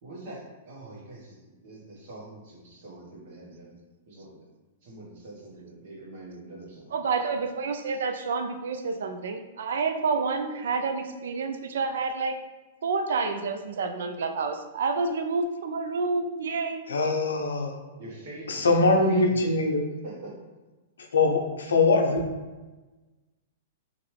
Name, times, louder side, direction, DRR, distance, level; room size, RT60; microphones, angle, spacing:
voice 1, 0.0-3.7 4.1-4.4 4.8-6.9 18.0-19.5 20.0-20.3, right 2 dB, 55° right, -4 dB, 1.2 m, -44 dB
voice 2, 6.9-12.4 12.8-16.9, right 4 dB, 75° right, 6 dB, 0.3 m, -29 dB
voice 3, 16.9-17.7 18.5-19.8 21.1-22.2, left 3 dB, 90° left, 2 dB, 0.5 m, -22 dB
2.8 x 2.5 x 3.1 m, 1.2 s
hypercardioid pair, 130°, 0 cm